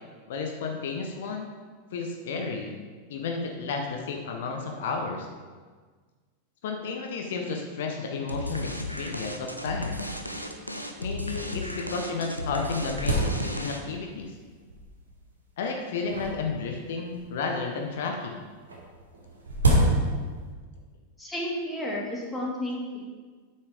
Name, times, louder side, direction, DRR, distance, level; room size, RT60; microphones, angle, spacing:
voice 1, 0.3-1.5 1.9-2.7 3.1-5.3 6.6-10.0 11.0-14.3 15.6-18.4, left 4 dB, 55° left, 2 dB, 0.9 m, -32 dB
sound 1, 8.3-14.0, left 1 dB, 90° left, 0.7 m, -35 dB
sound 2, 9.9-10.0 10.2-10.3 11.0-11.1 11.7-11.8 12.2-14.0 14.7-15.1 16.1-17.4 18.7-20.5, right 1 dB, 75° right, 1.9 m, -27 dB
voice 2, 21.2-23.1, left 1 dB, 5° left, -4 dB, 1.9 m, -32 dB
8.2 x 5.8 x 4.9 m, 1.5 s
figure-of-eight pair, 90°, 0 cm